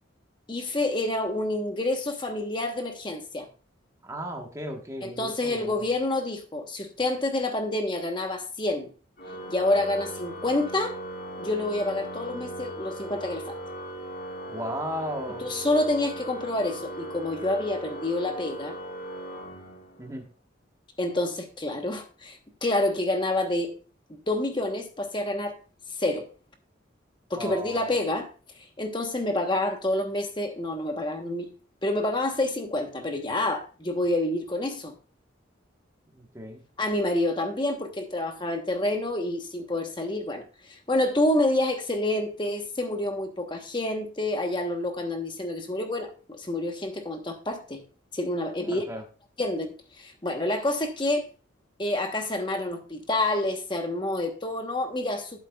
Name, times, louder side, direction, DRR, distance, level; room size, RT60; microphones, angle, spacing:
voice 1, 0.5-3.5 5.0-8.9 9.5-11.0 11.4-13.5 15.4-18.7 21.0-23.7 24.1-25.6 26.0-26.3 27.3-28.3 28.6-31.5 31.8-34.9 36.8-47.8 48.1-48.8 49.4-51.3 51.8-55.4, left 1 dB, 25° left, 1.1 m, -28 dB
voice 2, 4.0-5.9 14.5-15.7 20.0-20.3 27.3-27.8 36.1-36.6 48.6-49.0, equal, 15° right, 1.2 m, -36 dB
Organ, 9.2-20.1, right 1 dB, 50° left, 2.8 m, -38 dB
11.5 x 8.2 x 2.3 m
head